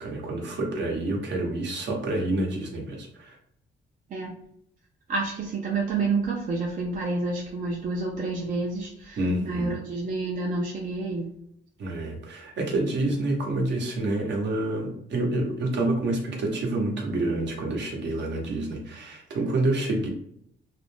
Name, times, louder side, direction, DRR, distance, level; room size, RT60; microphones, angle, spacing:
voice 1, 0.0-3.4 9.2-9.8 11.8-20.1, right 2 dB, 60° right, 0 dB, 0.9 m, -28 dB
voice 2, 5.1-11.3, right 3 dB, 45° right, -1 dB, 0.5 m, -29 dB
2.5 x 2.1 x 3.2 m, 0.72 s
cardioid pair, 90°, 20 cm